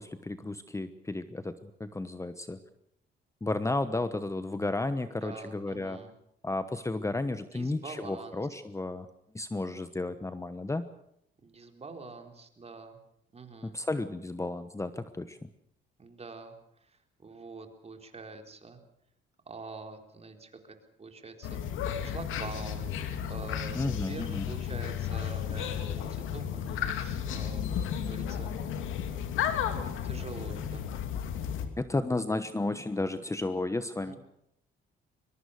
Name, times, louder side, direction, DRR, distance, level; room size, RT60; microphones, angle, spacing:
voice 1, 0.0-1.5 1.8-2.6 3.4-6.0 6.4-9.1 9.3-10.9 13.6-15.5 23.7-24.4 31.8-34.1, left 2 dB, 15° left, 11 dB, 1.1 m, -33 dB
voice 2, 5.0-6.1 7.5-8.5 11.4-13.0 13.3-13.8 16.0-16.6 16.8-18.8 19.5-20.6 21.0-21.6 22.0-22.9 23.3-28.5 30.0-30.8 34.0-34.2, right 3 dB, 30° right, 4 dB, 4.1 m, -45 dB
sound 1, 21.4-31.7, left 9 dB, 90° left, 2.5 m, -33 dB
22.5 x 22.5 x 6.6 m, 0.75 s
cardioid pair, 90°, 20 cm